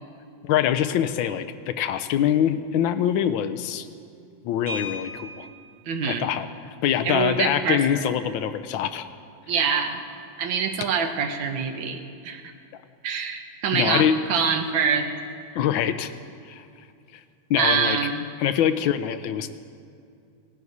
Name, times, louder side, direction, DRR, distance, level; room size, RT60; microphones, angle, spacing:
voice 1, 0.4-3.9 4.4-5.5 6.1-6.5 6.8-9.1 13.7-14.2 15.5-16.1 16.5-16.6 17.5-18.1 18.4-19.5, left 9 dB, 85° left, 11 dB, 1.4 m, -24 dB
sound 1, 4.7-5.7 7.2-7.3 7.7-7.8 8.2-8.5, left 1 dB, 60° right, 3.4 m, -37 dB
voice 2, 5.9-6.3 7.0-7.8 9.5-10.0 10.4-12.4 13.0-15.1 17.6-18.2, right 6 dB, 85° right, 5 dB, 1.7 m, -25 dB
18.0 x 11.0 x 4.0 m, 2.4 s
omnidirectional pair, 2.1 m